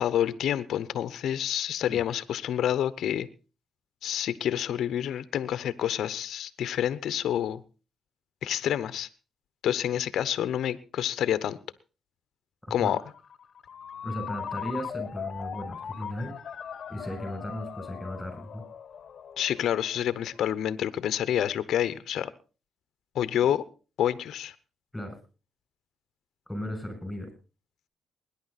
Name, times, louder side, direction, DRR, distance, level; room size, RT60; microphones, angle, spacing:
voice 1, 0.0-3.3 4.0-7.6 8.4-9.1 9.6-11.6 12.7-13.0 19.4-22.3 23.1-23.6 24.0-24.5, left 10 dB, 70° left, 0.9 m, -28 dB
Ringtone, 12.9-20.4, left 7 dB, 50° left, 1.2 m, -40 dB
voice 2, 14.0-16.3 16.9-18.6 24.9-25.2 26.5-27.3, left 1 dB, 5° left, 7.3 m, -36 dB
21.0 x 10.0 x 4.2 m
cardioid pair, 90°, 0 cm